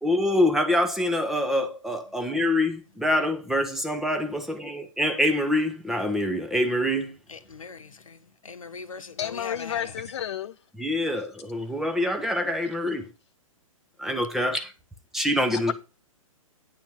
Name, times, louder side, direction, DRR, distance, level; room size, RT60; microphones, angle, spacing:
voice 1, 0.0-7.2 10.7-13.1 14.0-14.7 15.1-15.7, left 1 dB, ahead, 1.0 m, -25 dB
voice 2, 7.3-9.9, left 5 dB, 70° left, 1.1 m, -40 dB
voice 3, 9.2-10.5 15.5-15.7, left 10 dB, 55° left, 0.4 m, -31 dB
9.5 x 4.3 x 7.2 m
figure-of-eight pair, 115°, 18 cm